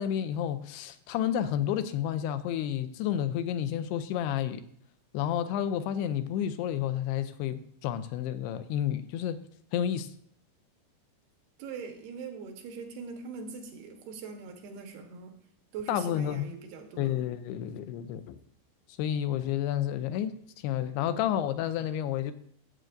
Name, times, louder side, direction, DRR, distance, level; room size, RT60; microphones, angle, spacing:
voice 1, 0.0-4.6 5.1-9.4 9.7-10.1 15.9-16.5 17.0-18.4 19.0-20.4 20.6-22.3, left 10 dB, 85° left, 11 dB, 2.6 m, -30 dB
voice 2, 11.6-15.3 15.7-17.1, right 5 dB, 75° right, 4 dB, 3.0 m, -41 dB
16.0 x 7.8 x 2.6 m, 0.63 s
omnidirectional pair, 4.6 m